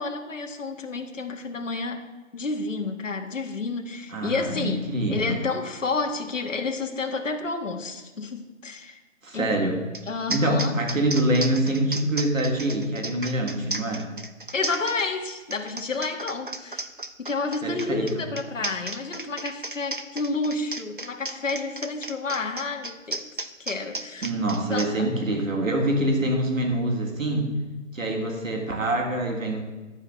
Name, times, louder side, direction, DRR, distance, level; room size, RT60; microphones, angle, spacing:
voice 1, 0.0-9.0 9.3-9.6 10.1-10.7 14.5-16.9 17.2-23.2 23.6-24.3 24.7-25.1, left 3 dB, 70° left, 4 dB, 1.4 m, -30 dB
voice 2, 4.1-5.4 9.2-9.8 10.3-14.1 17.6-18.2 24.2-27.5 27.9-29.6, right 1 dB, 80° right, 2 dB, 2.9 m, -25 dB
sound 1, 9.9-10.0 10.3-24.9, right 2 dB, 45° right, 0.5 m, -34 dB
12.0 x 4.9 x 7.9 m, 1.2 s
hypercardioid pair, 175°, 39 cm